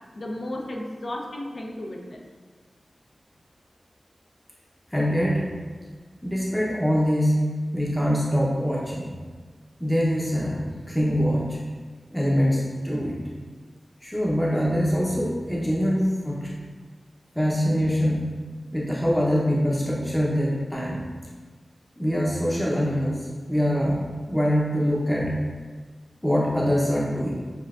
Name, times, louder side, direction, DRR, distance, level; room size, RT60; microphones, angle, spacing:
voice 1, 0.2-2.2, left 1 dB, 55° left, 1 dB, 0.6 m, -34 dB
voice 2, 4.9-5.5 6.2-7.4 7.7-9.1 9.8-11.6 12.1-13.2 14.0-16.5 17.3-18.3 18.7-21.0 22.0-25.3 26.2-27.3, equal, 10° left, -6 dB, 0.8 m, -24 dB
6.8 x 2.6 x 2.4 m, 1.5 s
wide cardioid pair, 80°, 0 cm